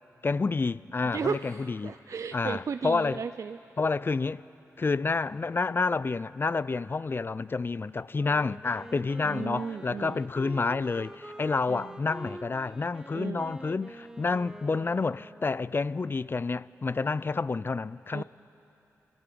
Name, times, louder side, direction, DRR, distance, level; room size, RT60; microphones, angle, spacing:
voice 1, 0.2-1.9 2.3-3.2 3.8-4.4 4.8-18.2, left 4 dB, 35° left, 0.3 m, -29 dB
voice 2, 1.1-3.6 9.2-10.2 11.7-11.9 13.1-13.5 18.1-18.2, right 6 dB, 55° right, 0.4 m, -35 dB
Wind instrument woodwind instrument, 8.1-15.9, right 1 dB, 10° right, 0.9 m, -46 dB
26.0 x 14.0 x 3.9 m
supercardioid pair, 45°, 6 cm